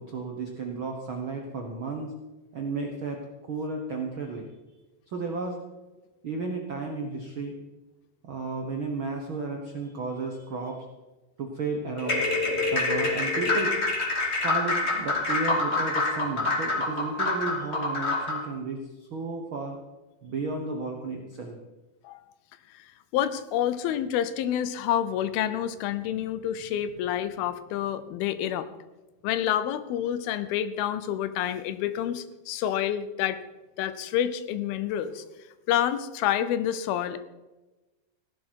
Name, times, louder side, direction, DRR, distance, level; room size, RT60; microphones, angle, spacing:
voice 1, 0.0-2.1 2.5-4.5 5.1-5.6 6.2-7.5 8.2-10.9 11.4-12.2 12.7-13.8 14.4-19.8 20.2-21.6, right 3 dB, 70° right, 2 dB, 1.2 m, -33 dB
sound 1, 12.0-18.5, left 2 dB, 20° left, 2.1 m, -26 dB
voice 2, 23.1-28.7 29.2-33.4 33.8-35.2 35.7-37.2, left 10 dB, 90° left, 13 dB, 2.7 m, -28 dB
16.5 x 12.0 x 4.6 m, 1.1 s
omnidirectional pair, 4.2 m